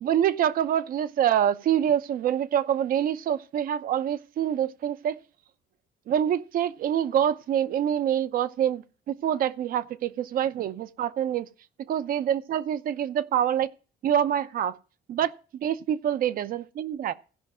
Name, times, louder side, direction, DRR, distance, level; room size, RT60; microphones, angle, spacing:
voice 1, 0.0-5.2 6.1-11.5 11.9-13.7 14.0-14.8 15.1-17.1, right 10 dB, 55° right, 0.7 m, -26 dB
15.5 x 5.3 x 4.9 m
cardioid pair, 110°, 17 cm